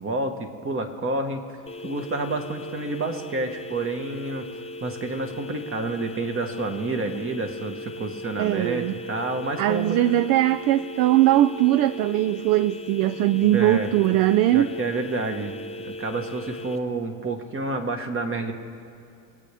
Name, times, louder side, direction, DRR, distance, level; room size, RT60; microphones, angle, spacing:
voice 1, 0.0-1.6 1.8-4.5 4.8-10.0 13.5-13.9 14.5-15.6 15.8-18.5, right 2 dB, 30° right, 6 dB, 1.6 m, -29 dB
sound 1, 1.7-16.8, left 1 dB, 15° left, 0.8 m, -38 dB
voice 2, 8.4-9.0 9.6-14.7, right 14 dB, 50° right, 15 dB, 0.5 m, -20 dB
25.0 x 8.5 x 3.5 m, 2.5 s
hypercardioid pair, 80°, 42 cm